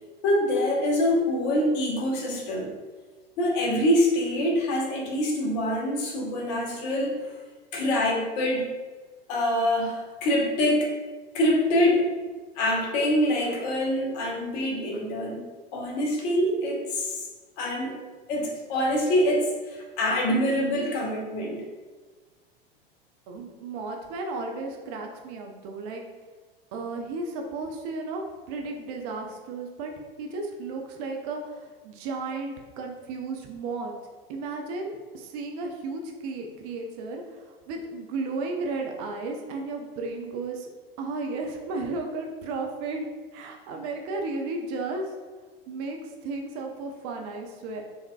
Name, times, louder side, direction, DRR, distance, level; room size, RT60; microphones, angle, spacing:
voice 1, 0.2-2.7 3.4-7.4 7.7-8.7 9.3-10.9 11.3-12.1 12.6-17.3 17.6-18.0 18.3-21.6, left 1 dB, 45° left, -1 dB, 0.9 m, -25 dB
voice 2, 23.3-26.0 26.7-29.9 30.2-33.9 34.3-40.7 41.0-43.1 43.3-45.1 45.7-47.8, right 3 dB, 40° right, 2 dB, 0.6 m, -34 dB
4.1 x 3.5 x 2.2 m, 1.3 s
figure-of-eight pair, 85°, 30 cm